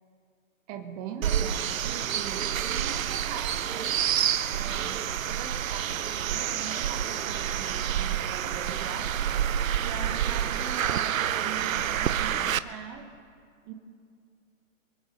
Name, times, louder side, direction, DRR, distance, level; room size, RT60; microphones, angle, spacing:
voice 1, 0.7-4.0 4.5-9.1 9.8-13.1 13.6-13.7, right 7 dB, 30° right, 3 dB, 1.3 m, -41 dB
sound 1, 1.2-12.6, right 10 dB, 75° right, 0.8 m, -28 dB
25.0 x 8.8 x 5.5 m, 2.3 s
hypercardioid pair, 145°, 41 cm